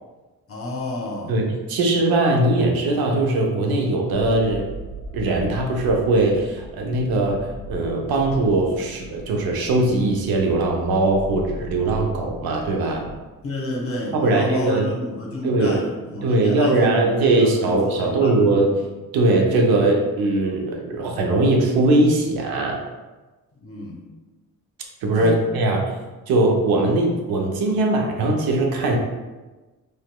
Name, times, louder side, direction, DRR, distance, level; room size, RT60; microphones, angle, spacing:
voice 1, 0.5-1.4 13.4-18.5 23.6-24.1 25.2-25.5, left 2 dB, 35° left, -1 dB, 0.9 m, -30 dB
voice 2, 1.3-4.6 5.1-7.4 7.7-13.1 14.1-14.8 15.4-15.8 16.2-18.7 19.1-22.8 25.0-25.8 26.3-29.0, right 2 dB, 70° right, 1 dB, 0.7 m, -20 dB
sound 1, 4.1-13.2, right 1 dB, 10° left, 0.7 m, -38 dB
3.3 x 2.8 x 2.2 m, 1.2 s
supercardioid pair, 55°, 38 cm